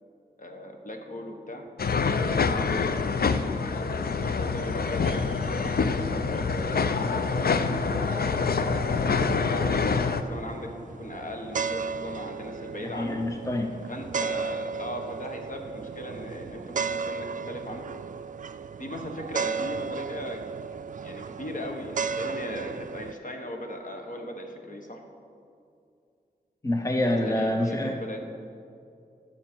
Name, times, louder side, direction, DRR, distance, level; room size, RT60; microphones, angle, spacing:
voice 1, 0.4-8.4 9.1-13.2 13.9-17.9 18.8-20.4 21.0-25.0 27.2-28.2, left 1 dB, 50° left, 3 dB, 1.3 m, -38 dB
sound 1, 1.8-10.2, left 5 dB, 65° left, 0.5 m, -26 dB
sound 2, 4.1-23.1, right 5 dB, 50° right, 0.4 m, -36 dB
voice 2, 12.8-13.8 26.6-28.2, left 1 dB, 20° left, 3 dB, 0.7 m, -27 dB
14.5 x 7.1 x 4.6 m, 2.5 s
wide cardioid pair, 75°, 17 cm